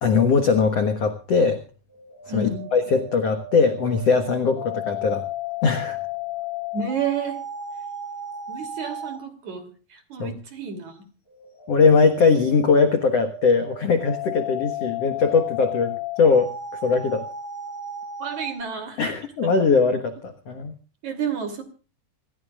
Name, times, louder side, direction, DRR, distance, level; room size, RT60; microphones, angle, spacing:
voice 1, 0.0-1.6 2.3-5.2 5.6-6.0 10.2-10.4 11.7-16.5 16.8-17.3 19.0-20.7, left 5 dB, 70° left, 7 dB, 1.5 m, -20 dB
sound 1, 1.9-9.3 11.3-18.6, left 4 dB, 20° left, 4.5 m, -34 dB
voice 2, 2.3-2.7 6.7-7.4 8.5-11.0 18.2-19.0 21.0-21.6, right 6 dB, 45° right, 7 dB, 3.8 m, -30 dB
26.5 x 16.0 x 2.4 m, 0.36 s
omnidirectional pair, 5.1 m